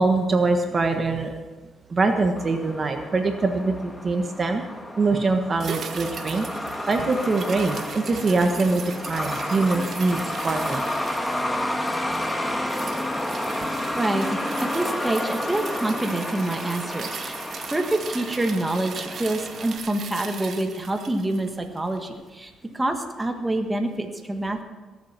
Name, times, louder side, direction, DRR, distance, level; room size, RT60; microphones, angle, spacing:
voice 1, 0.0-1.3 1.9-4.6 5.0-6.5 6.9-10.8, right 3 dB, 35° right, 5 dB, 1.4 m, -23 dB
Truck, 2.4-19.8, left 1 dB, 10° left, 1.6 m, -31 dB
sound 1, 5.6-22.1 22.4-22.5, right 6 dB, 60° right, 1.3 m, -39 dB
voice 2, 13.9-17.4 17.7-24.6, right 1 dB, 15° right, 4 dB, 1.5 m, -27 dB
19.5 x 7.7 x 6.0 m, 1.3 s
cardioid pair, 90°, 0 cm